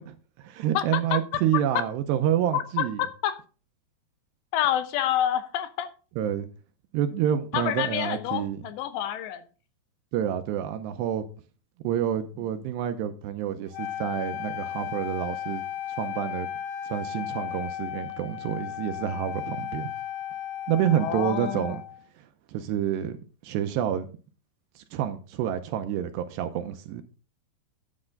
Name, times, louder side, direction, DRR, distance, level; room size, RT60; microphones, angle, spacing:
voice 1, 0.0-3.0 6.2-6.5 6.9-8.6 10.1-11.2 11.8-15.6 16.0-16.5 16.9-19.9 20.7-21.8 22.5-23.2 23.4-24.1 24.8-27.0, right 10 dB, 80° right, 2.7 m, -28 dB
voice 2, 0.7-1.2 2.5-3.4 4.5-5.9 7.5-9.4 21.0-21.8, left 11 dB, 80° left, 2.8 m, -28 dB
Wind instrument woodwind instrument, 13.7-22.0, left 11 dB, 60° left, 3.1 m, -35 dB
9.8 x 9.8 x 3.8 m
omnidirectional pair, 5.3 m